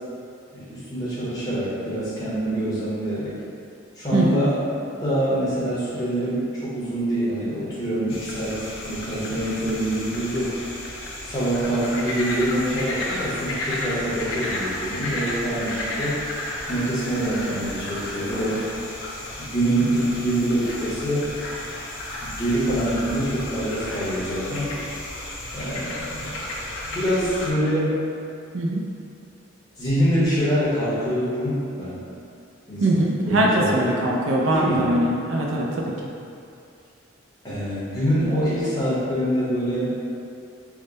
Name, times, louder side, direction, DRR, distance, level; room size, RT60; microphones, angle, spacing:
voice 1, 0.5-3.4 3.9-4.6 5.0-10.6 11.2-16.2 16.7-18.6 19.4-21.3 22.2-24.8 25.5-26.3 26.8-28.0 29.8-32.0 32.7-34.2 34.5-34.9 37.4-39.9, right 1 dB, 20° left, -11 dB, 0.9 m, -25 dB
voice 2, 4.1-4.5 28.5-28.8 32.8-35.9, right 1 dB, 80° right, -2 dB, 0.4 m, -21 dB
sound 1, 8.1-27.5, left 1 dB, 85° left, 0.6 m, -33 dB
3.5 x 2.1 x 3.8 m, 2.6 s
head